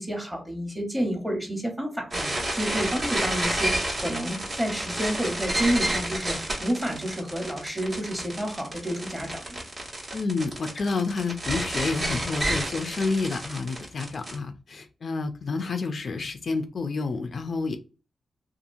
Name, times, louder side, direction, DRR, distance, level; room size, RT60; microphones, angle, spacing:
voice 1, 0.0-9.6, equal, 10° right, 2 dB, 1.0 m, -30 dB
sound 1, 2.1-14.3, right 1 dB, 50° right, 1.1 m, -30 dB
voice 2, 10.1-17.8, left 4 dB, 60° left, 7 dB, 0.3 m, -29 dB
2.7 x 2.4 x 2.6 m, 0.33 s
cardioid pair, 75°, 0 cm